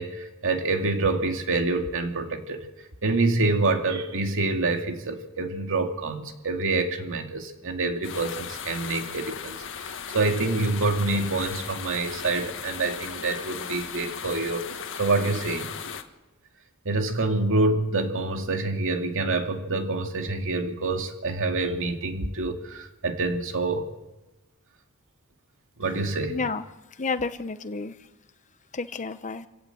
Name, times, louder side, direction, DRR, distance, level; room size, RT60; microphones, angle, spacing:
voice 1, 0.0-2.7 3.0-14.6 15.0-15.7 16.8-23.9 25.8-26.4, right 3 dB, 60° right, 2.4 m, -26 dB
sound 1, 8.0-16.0, left 7 dB, 60° left, 1.7 m, -37 dB
voice 2, 26.3-26.6 27.0-27.9 28.7-29.5, left 4 dB, 35° left, 0.8 m, -30 dB
26.0 x 17.0 x 7.8 m
head